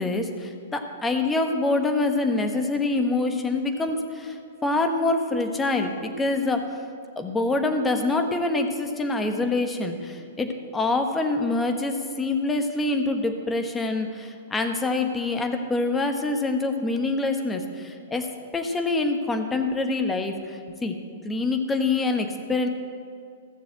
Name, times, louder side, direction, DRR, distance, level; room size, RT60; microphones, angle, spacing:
voice 1, 0.0-6.8 7.2-10.5 10.7-18.3 18.5-21.0 21.2-22.7, left 3 dB, 15° left, 5 dB, 1.3 m, -25 dB
15.0 x 7.0 x 7.7 m, 2.4 s
figure-of-eight pair, 110°, 0 cm